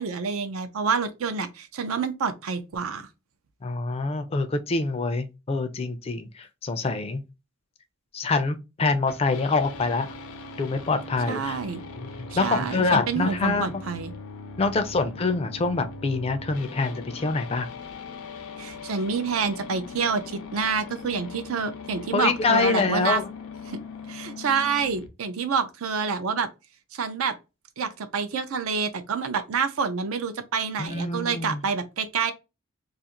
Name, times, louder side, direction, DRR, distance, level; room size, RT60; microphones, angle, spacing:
voice 1, 0.0-3.1 11.3-11.8 12.4-14.1 18.6-23.2 23.7-23.8 24.1-26.5 26.9-27.3 27.8-32.3, right 5 dB, 75° right, 0.5 m, -28 dB
voice 2, 3.6-7.2 8.1-10.1 10.6-11.6 12.0-13.8 14.6-17.7 22.1-23.3 30.8-31.6, left 3 dB, 30° left, 0.3 m, -25 dB
sound 1, 9.1-25.1, left 4 dB, 90° left, 0.5 m, -40 dB
2.4 x 2.4 x 2.8 m
head